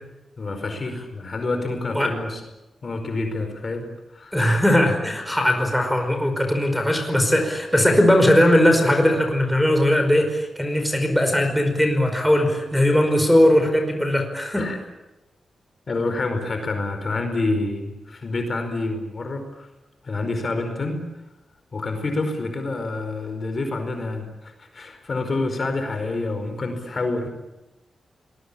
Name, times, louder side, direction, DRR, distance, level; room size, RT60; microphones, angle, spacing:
voice 1, 0.4-2.4 2.8-4.4 14.6-14.8 15.9-19.7 20.0-21.0 21.7-27.3, left 2 dB, 45° left, 6 dB, 4.9 m, -27 dB
voice 2, 4.3-14.6, left 1 dB, ahead, 4 dB, 5.1 m, -19 dB
27.0 x 20.5 x 8.7 m, 0.99 s
wide cardioid pair, 110°, 0 cm